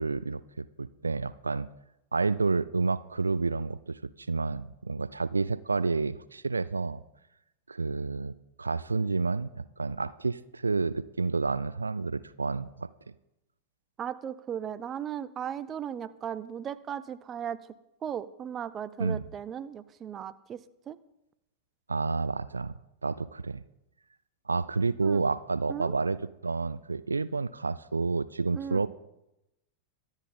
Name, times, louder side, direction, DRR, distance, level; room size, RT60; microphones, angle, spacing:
voice 1, 0.0-1.7 2.1-7.0 7.7-12.9 19.0-19.2 21.9-22.7 23.0-23.6 24.5-26.2 26.4-28.9, right 4 dB, 80° right, 16 dB, 0.4 m, -30 dB
voice 2, 14.0-17.6 18.0-21.0 25.0-25.2 25.7-25.9 28.5-28.8, right 9 dB, 25° right, 15 dB, 0.6 m, -37 dB
23.5 x 9.1 x 3.8 m, 0.88 s
figure-of-eight pair, 90°, 0 cm